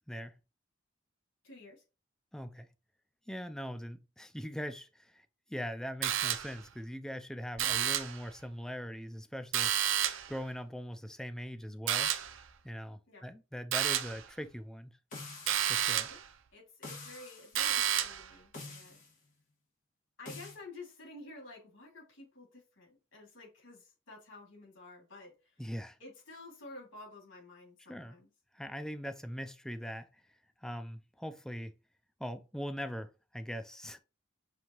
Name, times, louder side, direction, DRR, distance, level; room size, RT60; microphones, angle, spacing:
voice 1, 1.4-1.8 13.1-13.2 16.0-16.2 16.5-19.0 20.2-25.6 26.0-28.3, left 2 dB, 85° left, 2.7 m, -51 dB
voice 2, 2.3-2.7 3.3-9.9 10.3-12.1 12.6-15.0 15.7-16.1 25.6-26.0 27.9-28.2 28.5-30.1 30.6-31.7 32.2-34.0, equal, 5° left, 0.3 m, -41 dB
sound 1, 6.0-6.7 7.6-8.2 9.5-10.4 11.9-12.4 13.7-14.2 15.5-16.3 17.6-18.3, right 10 dB, 75° right, 0.5 m, -31 dB
sound 2, 15.1-15.9 16.8-17.5 18.5-19.1 20.3-20.6, left 3 dB, 40° left, 1.7 m, -46 dB
5.8 x 2.7 x 3.0 m
head